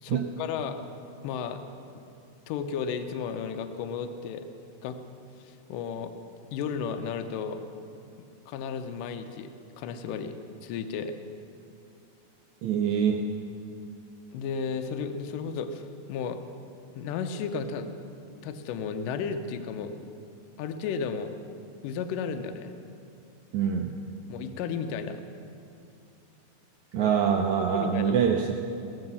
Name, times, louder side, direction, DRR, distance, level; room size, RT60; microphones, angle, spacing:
voice 1, 0.0-0.8 1.2-1.6 2.5-4.5 4.8-5.0 5.4-6.1 6.5-7.6 8.5-9.5 9.8-10.3 10.6-11.1 14.3-16.4 16.9-17.9 18.4-20.1 20.6-21.3 21.8-22.7 24.3-25.2 27.0-27.1 27.7-28.4, left 6 dB, 75° left, 7 dB, 2.2 m, -33 dB
voice 2, 12.6-13.3 23.5-23.9 26.9-28.6, right 7 dB, 85° right, 3 dB, 1.6 m, -25 dB
17.0 x 7.8 x 6.8 m, 2.6 s
omnidirectional pair, 4.0 m